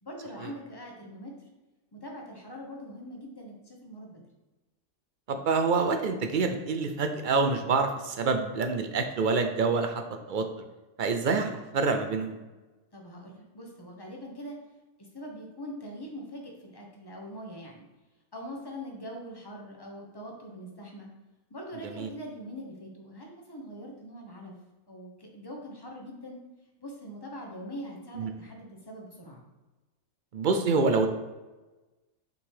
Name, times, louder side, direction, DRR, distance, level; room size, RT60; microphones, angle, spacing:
voice 1, 0.0-1.3 1.9-4.2 12.9-14.6 15.0-17.9 18.3-21.1 21.5-24.5 24.9-26.4 26.8-29.4, equal, 20° left, 0 dB, 1.0 m, -42 dB
voice 2, 5.3-10.5 11.0-12.4 22.0-22.1 28.1-28.3 30.3-31.1, right 4 dB, 55° right, 7 dB, 0.5 m, -27 dB
6.0 x 3.9 x 4.8 m, 1.2 s
omnidirectional pair, 1.4 m